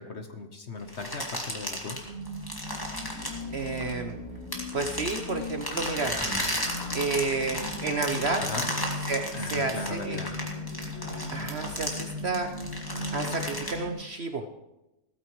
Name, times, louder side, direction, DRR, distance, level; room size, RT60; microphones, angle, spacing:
voice 1, 0.0-2.0 8.4-8.7 9.3-10.4, left 4 dB, 45° left, 6 dB, 1.2 m, -38 dB
sound 1, 0.9-4.1 4.5-13.7, left 1 dB, 15° left, 2.1 m, -34 dB
sound 2, 2.0-13.9, left 1 dB, 70° left, 6.3 m, -38 dB
voice 2, 3.5-4.2 4.7-6.2 6.9-8.4 9.1-10.2 11.3-12.5 13.1-14.5, right 3 dB, 50° right, 6 dB, 0.9 m, -30 dB
16.5 x 14.5 x 3.1 m, 0.96 s
omnidirectional pair, 1.8 m